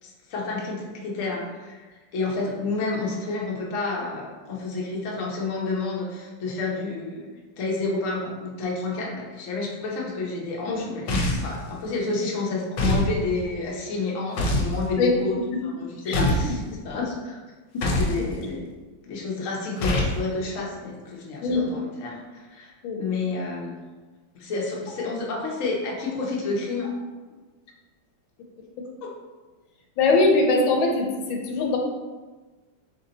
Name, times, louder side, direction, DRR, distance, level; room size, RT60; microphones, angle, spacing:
voice 1, 0.0-7.3 7.6-15.3 15.6-17.4 17.9-18.6 19.1-22.7 23.0-23.7 24.3-26.9 29.0-29.1, left 3 dB, 55° left, -2 dB, 1.0 m, -30 dB
sound 1, 11.1-11.6 12.8-13.1 14.4-14.7 16.1-16.5 17.8-18.2 19.8-20.2, left 1 dB, 70° left, 1.4 m, -23 dB
voice 2, 30.0-31.8, left 3 dB, 90° left, 1 dB, 1.4 m, -21 dB
4.2 x 2.7 x 3.9 m, 1.3 s
omnidirectional pair, 2.1 m